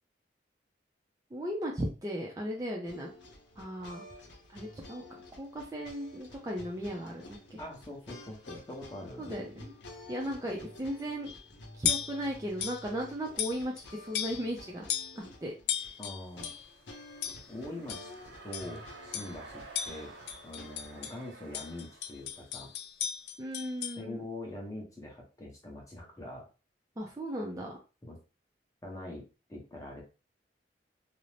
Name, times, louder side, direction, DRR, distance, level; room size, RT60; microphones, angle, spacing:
voice 1, 1.3-3.1 3.6-4.0 4.5-5.0 5.4-7.6 9.2-9.7 10.1-11.3 11.8-14.8 15.1-15.9 23.4-24.3 27.0-27.7, equal, 20° right, -1 dB, 0.4 m, -36 dB
sound 1, 2.9-21.0, left 2 dB, 80° left, 0.7 m, -51 dB
voice 2, 7.6-9.4 16.0-16.5 17.5-18.1 18.4-20.2 20.4-22.7 24.0-26.4 28.0-28.2 28.8-30.0, left 1 dB, 20° left, -1 dB, 0.7 m, -43 dB
sound 2, 11.2-11.4 11.8-12.2 12.6-12.9 13.4-13.8 14.1-14.5 14.9-15.2 15.7-16.7 17.2-17.5 17.9-18.1 18.5-18.8 19.1-19.4 19.7-21.2 21.5-24.0, left 9 dB, 60° left, 0.3 m, -36 dB
sound 3, 15.7-23.3, right 3 dB, 80° right, 0.6 m, -53 dB
2.5 x 2.0 x 3.1 m, 0.32 s
head